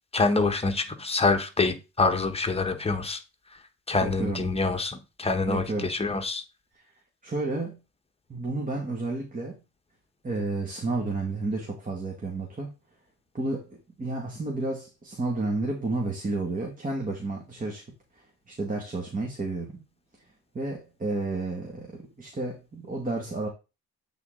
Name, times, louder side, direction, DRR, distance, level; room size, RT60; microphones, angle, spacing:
voice 1, 0.1-3.2 3.9-6.4, left 3 dB, 20° left, 1.2 m, -26 dB
voice 2, 4.0-4.4 5.5-5.9 6.7-6.9 7.2-7.8 8.3-9.6 10.2-12.7 13.3-17.9 18.1-19.8 20.5-23.5, right 2 dB, 25° right, 1.7 m, -31 dB
8.3 x 4.0 x 3.8 m
cardioid pair, 90°, 30 cm